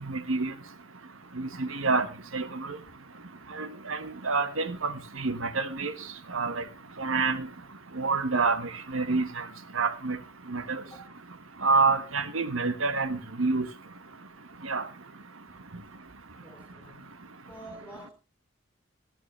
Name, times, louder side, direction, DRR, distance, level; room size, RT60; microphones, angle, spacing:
voice 1, 0.1-0.5 1.4-2.1 2.3-2.8 3.6-5.9 6.3-6.6 7.0-7.5 8.0-8.6 8.9-9.4 9.7-10.2 10.5-10.8 11.6-13.7 14.6-14.8, right 4 dB, 80° right, 1.4 m, -27 dB
voice 2, 1.2-1.6 10.9-11.1 15.5-15.6 16.4-17.1 17.5-18.1, right 1 dB, 10° left, 3.4 m, -48 dB
18.0 x 12.0 x 3.2 m
head